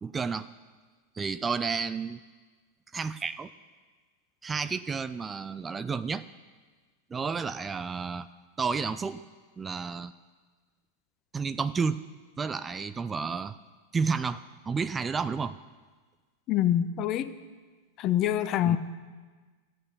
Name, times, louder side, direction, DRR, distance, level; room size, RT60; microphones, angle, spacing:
voice 1, 0.0-0.5 1.2-2.2 2.9-3.5 4.4-6.2 7.1-8.3 8.6-9.2 9.6-10.1 11.3-12.0 12.4-13.6 13.9-15.6 18.7-18.8, right 5 dB, 15° right, 14 dB, 0.4 m, -31 dB
voice 2, 16.5-17.3 18.0-18.8, left 11 dB, 35° left, 13 dB, 0.6 m, -25 dB
15.0 x 8.5 x 6.9 m, 1.4 s
figure-of-eight pair, 90°, 0 cm